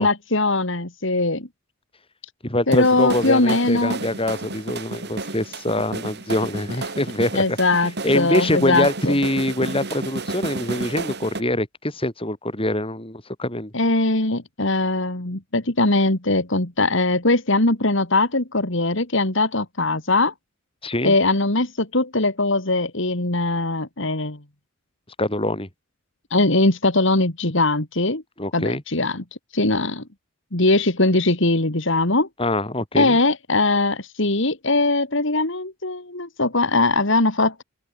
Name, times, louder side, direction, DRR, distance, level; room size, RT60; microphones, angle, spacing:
voice 1, 0.0-1.5 2.7-4.0 7.3-9.2 13.7-20.3 21.0-24.4 26.3-28.2 28.5-29.2 29.5-30.0 30.5-32.3 33.0-37.6, left 2 dB, 60° left, 2.9 m, -21 dB
voice 2, 2.4-7.6 8.0-13.7 20.8-21.1 25.2-25.7 28.4-28.8 32.4-33.2, left 1 dB, 25° left, 6.0 m, -24 dB
sound 1, 2.7-11.4, right 2 dB, 50° right, 3.2 m, -32 dB
open air
head